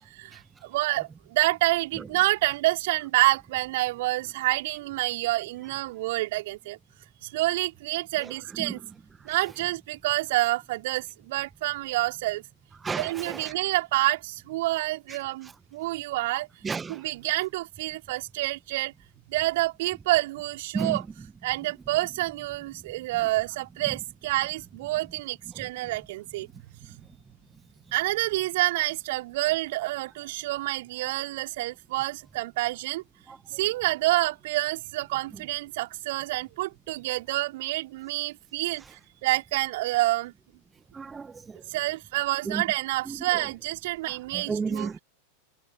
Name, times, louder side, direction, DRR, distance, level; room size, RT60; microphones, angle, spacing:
voice 1, 0.1-6.8 7.2-8.8 9.2-12.4 12.9-16.5 16.9-18.9 19.3-21.0 21.4-26.5 26.9-27.0 27.9-33.0 33.5-40.3 41.7-44.9, right 18 dB, 50° right, 4.9 m, -28 dB
voice 2, 12.8-13.5 15.1-15.2 16.6-17.0 20.7-21.0 33.3-33.4 40.9-41.6 42.5-42.6 43.1-43.4 44.1-45.0, right 5 dB, 15° right, 1.4 m, -33 dB
figure-of-eight pair, 90°, 0 cm